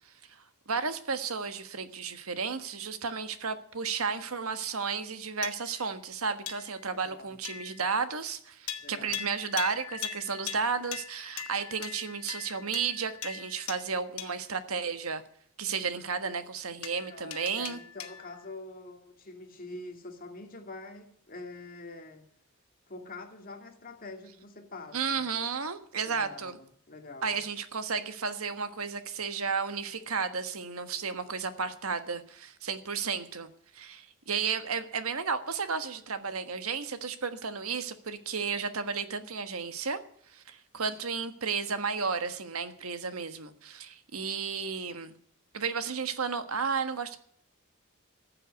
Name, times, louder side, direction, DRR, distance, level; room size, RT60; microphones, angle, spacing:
voice 1, 0.7-15.2 15.6-17.8 24.9-26.6 27.2-40.0 40.3-45.2 45.5-47.2, right 5 dB, 90° right, 1.4 m, -33 dB
sound 1, 5.4-5.9 6.5-6.9 7.4-7.9 8.7-14.6 16.8-18.4, left 8 dB, 85° left, 1.8 m, -41 dB
voice 2, 6.9-7.4 8.8-9.2 17.1-22.3 22.9-25.2 26.0-27.4, left 2 dB, 40° left, 2.4 m, -45 dB
14.5 x 7.7 x 9.2 m
head